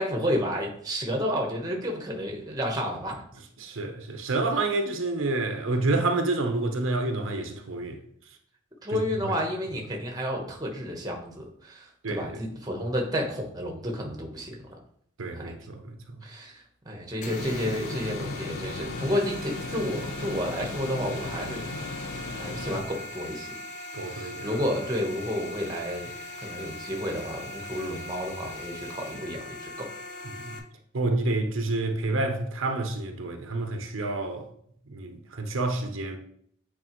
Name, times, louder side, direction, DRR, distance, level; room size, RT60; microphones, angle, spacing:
voice 1, 0.0-3.2 5.9-6.0 8.8-14.8 15.3-15.6 16.2-21.7 22.4-23.5 24.0-26.1 26.4-29.9, equal, 20° right, 1.0 m, -31 dB
voice 2, 3.6-8.0 8.9-9.4 12.0-12.4 15.2-16.0 23.9-24.6 30.2-30.6 30.9-34.5 34.9-36.2, right 2 dB, 75° right, 0.7 m, -29 dB
sound 1, 17.2-30.6, left 2 dB, 35° left, 0.7 m, -40 dB
sound 2, 17.4-22.8, left 2 dB, 90° left, 0.7 m, -36 dB
8.5 x 4.1 x 3.0 m
head